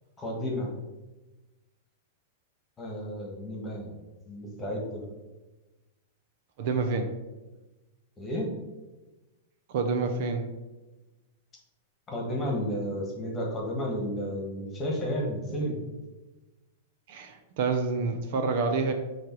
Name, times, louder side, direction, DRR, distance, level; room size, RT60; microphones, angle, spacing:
voice 1, 0.2-0.7 2.8-3.9 4.2-5.1 8.2-8.5 12.1-15.8, equal, 15° left, 0 dB, 1.7 m, -32 dB
voice 2, 6.6-7.1 9.7-10.5 17.1-18.9, right 4 dB, 50° right, 6 dB, 0.8 m, -28 dB
8.8 x 3.3 x 4.7 m, 1.1 s
supercardioid pair, 155°, 0 cm